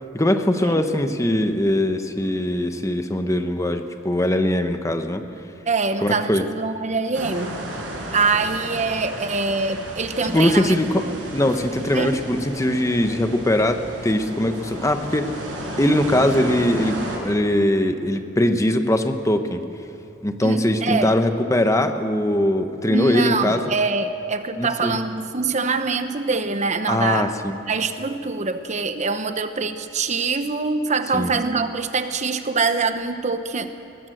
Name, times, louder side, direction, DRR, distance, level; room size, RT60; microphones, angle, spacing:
voice 1, 0.1-5.2 6.0-6.5 10.3-15.3 15.8-19.6 20.2-23.6 24.6-25.0 26.9-27.5 31.1-31.3, left 1 dB, 15° left, 7 dB, 1.1 m, -21 dB
voice 2, 5.7-7.5 8.1-10.8 11.1-11.2 11.9-12.1 20.4-21.1 22.9-27.3 27.7-33.7, right 4 dB, 40° right, 9 dB, 0.9 m, -24 dB
sound 1, 7.1-17.2, right 1 dB, 90° right, 6.8 m, -33 dB
20.5 x 20.0 x 7.9 m, 2.9 s
head